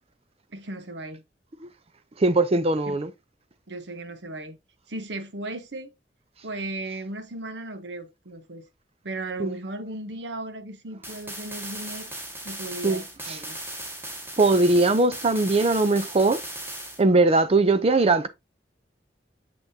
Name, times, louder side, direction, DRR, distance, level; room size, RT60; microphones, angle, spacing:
voice 1, 0.5-1.2 2.9-3.0 3.7-4.6 4.9-5.9 6.4-8.7 9.0-12.1 12.4-13.6, right 2 dB, 75° right, 1.0 m, -36 dB
voice 2, 2.2-3.1 9.4-9.6 12.8-13.0 13.3-13.4 14.4-16.4 17.0-18.3, right 3 dB, 35° right, 0.6 m, -20 dB
sound 1, 11.0-17.0, right 1 dB, 15° right, 1.6 m, -37 dB
6.9 x 5.7 x 2.7 m
head